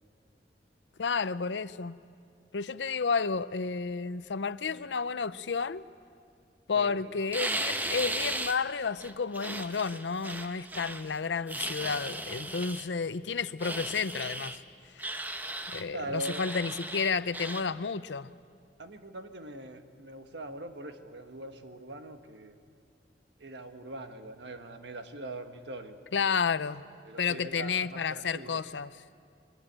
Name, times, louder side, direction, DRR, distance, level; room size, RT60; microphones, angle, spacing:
voice 1, 1.0-2.0 2.5-5.8 6.7-14.6 15.0-15.1 15.7-18.3 26.1-26.9 27.2-28.9, left 5 dB, 85° left, 15 dB, 0.6 m, -31 dB
voice 2, 6.7-7.1 15.9-16.5 18.8-22.6 23.4-26.3 27.0-28.6, right 2 dB, 75° right, 7 dB, 1.5 m, -42 dB
sound 1, 7.3-8.6 9.0-11.1 11.5-12.9 13.6-14.6 15.0-15.8 16.2-17.6, right 1 dB, 10° right, 0.9 m, -36 dB
23.0 x 21.5 x 8.9 m, 2.3 s
head